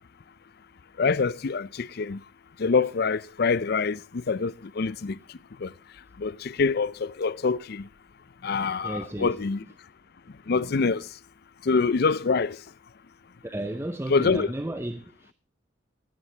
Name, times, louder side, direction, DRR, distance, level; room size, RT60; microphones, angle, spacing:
voice 1, 1.0-2.2 2.6-5.2 5.6-5.7 6.2-7.8 8.4-9.6 10.5-11.0 11.7-12.6 14.1-14.5, left 4 dB, 55° left, 0.5 m, -25 dB
voice 2, 8.8-9.4 13.4-15.3, right 1 dB, 15° right, 0.6 m, -33 dB
17.0 x 11.0 x 3.3 m
head